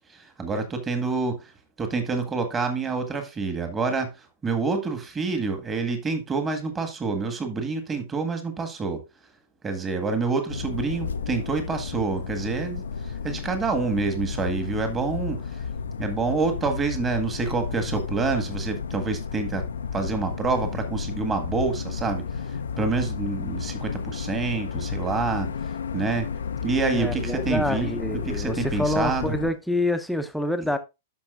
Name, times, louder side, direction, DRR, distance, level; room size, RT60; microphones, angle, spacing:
voice 1, 0.1-1.5 1.8-9.0 9.6-15.7 16.0-26.3 26.6-29.3, right 4 dB, 20° right, 1.7 m, -27 dB
sound 1, 10.5-29.5, left 6 dB, 70° left, 0.6 m, -32 dB
voice 2, 26.9-30.8, left 1 dB, ahead, 0.8 m, -27 dB
12.5 x 5.3 x 2.5 m
figure-of-eight pair, 105°, 0 cm